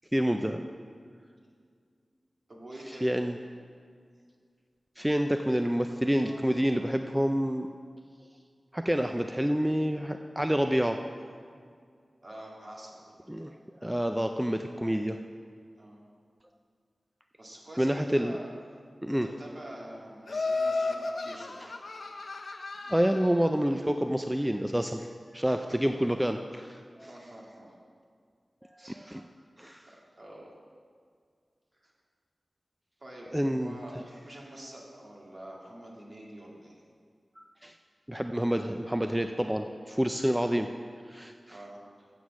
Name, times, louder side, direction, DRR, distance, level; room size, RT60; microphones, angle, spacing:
voice 1, 0.1-0.6 3.0-3.4 5.0-7.7 8.7-11.0 13.3-13.5 13.8-15.2 17.8-18.3 19.0-19.3 21.6-21.7 22.9-25.1 25.3-27.1 28.7-29.2 29.6-29.9 33.3-33.8 37.4-37.7 38.1-40.7 41.1-41.6, equal, 10° right, 6 dB, 0.4 m, -28 dB
voice 2, 2.5-3.2 12.2-13.2 15.7-16.0 17.4-18.5 19.1-21.7 25.5-26.0 27.1-27.7 28.8-29.1 30.2-30.5 31.8-31.9 33.0-36.8 41.5-41.8, right 1 dB, 50° right, -3 dB, 2.1 m, -46 dB
Laughter, 20.3-23.5, left 3 dB, 75° left, 0.6 m, -33 dB
7.8 x 6.2 x 7.2 m, 2.1 s
wide cardioid pair, 60°, 0 cm